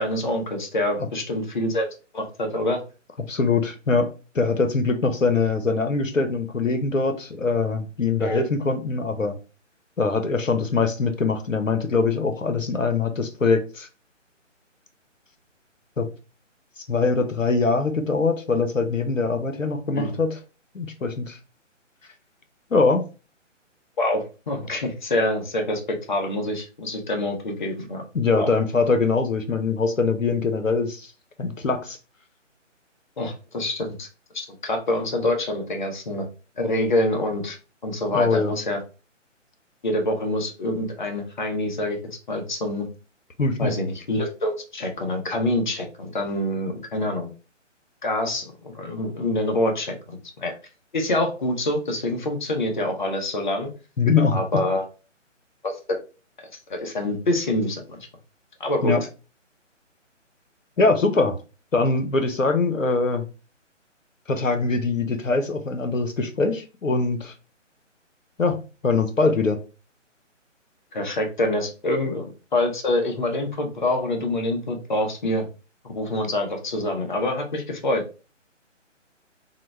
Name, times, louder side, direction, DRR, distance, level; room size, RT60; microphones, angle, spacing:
voice 1, 0.0-1.9 2.1-2.8 8.2-8.4 20.0-20.1 24.0-28.0 28.4-28.5 33.2-34.1 34.3-36.3 36.6-37.6 37.8-38.8 39.8-42.0 42.3-42.9 43.6-47.3 48.0-50.5 50.9-53.7 54.3-54.9 55.6-56.0 56.7-58.0 58.6-58.9 70.9-75.5 75.8-78.0, left 1 dB, 40° left, 3 dB, 0.7 m, -26 dB
voice 2, 3.3-4.1 4.3-9.4 10.0-13.9 16.0-16.1 16.9-20.4 20.7-21.4 22.7-23.0 28.1-31.1 31.4-32.0 38.1-38.5 43.4-43.7 54.0-54.6 58.8-59.0 60.8-61.4 61.7-63.3 64.3-67.3 68.4-69.6, left 4 dB, 85° left, 7 dB, 0.7 m, -22 dB
3.9 x 2.0 x 3.2 m, 0.33 s
figure-of-eight pair, 145°, 38 cm